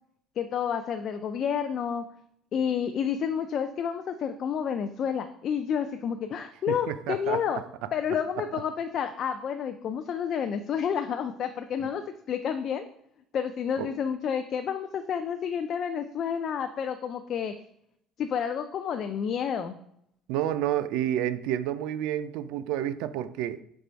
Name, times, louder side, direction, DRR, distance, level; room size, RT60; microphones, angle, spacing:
voice 1, 0.4-2.0 2.5-7.6 7.9-12.9 13.3-17.5 18.2-19.8, left 7 dB, 40° left, 0.3 m, -30 dB
voice 2, 6.7-7.6 13.8-13.9 20.3-23.6, right 11 dB, 85° right, 0.4 m, -30 dB
5.3 x 4.1 x 4.4 m
cardioid pair, 160°, 0 cm